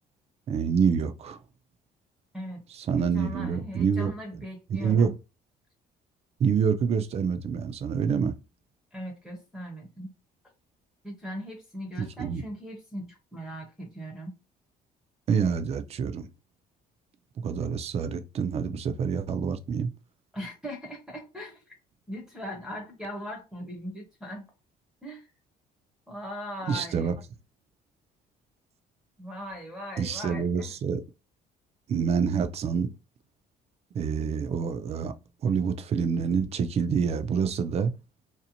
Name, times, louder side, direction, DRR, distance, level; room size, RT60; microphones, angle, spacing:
voice 1, 0.5-1.4 2.7-4.1 4.7-5.1 6.4-8.3 12.0-12.4 15.3-16.3 17.4-19.9 26.7-27.1 30.0-31.0 31.9-32.9 33.9-35.1 35.4-37.9, right 6 dB, 40° right, 0.4 m, -27 dB
voice 2, 2.9-5.1 8.9-10.1 11.0-14.3 20.3-21.7 22.1-24.5 25.0-25.3 26.1-27.1 29.2-30.7, equal, 5° right, 0.7 m, -39 dB
2.6 x 2.0 x 2.8 m
cardioid pair, 110°, 17 cm